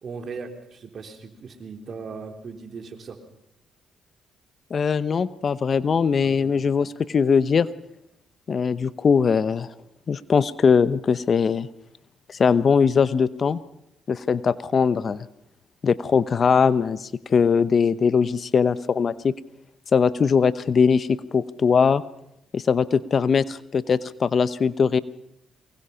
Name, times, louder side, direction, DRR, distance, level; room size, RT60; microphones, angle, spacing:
voice 1, 0.0-3.2 6.2-6.6, right 5 dB, 55° right, 5 dB, 3.4 m, -38 dB
voice 2, 4.7-7.7 8.5-9.7 10.1-11.7 12.3-13.6 14.1-15.2 15.8-19.3 19.9-22.0 22.5-25.0, left 6 dB, 50° left, 16 dB, 0.9 m, -21 dB
23.5 x 21.0 x 5.8 m, 0.82 s
supercardioid pair, 55°, 0 cm